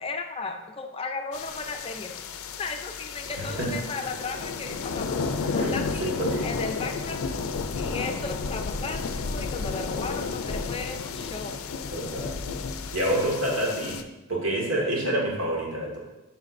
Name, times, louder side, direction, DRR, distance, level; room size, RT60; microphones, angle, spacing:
voice 1, 0.0-2.1 2.6-5.2 5.5-6.1 6.4-7.4 7.7-11.5, left 3 dB, 25° left, 5 dB, 0.4 m, -35 dB
sound 1, 1.3-14.0, left 4 dB, 85° left, 0.4 m, -32 dB
voice 2, 3.4-3.7 5.4-6.5 11.9-12.3 12.9-14.0 14.3-16.0, right 1 dB, 75° right, -2 dB, 1.8 m, -28 dB
9.2 x 5.6 x 2.6 m, 0.99 s
head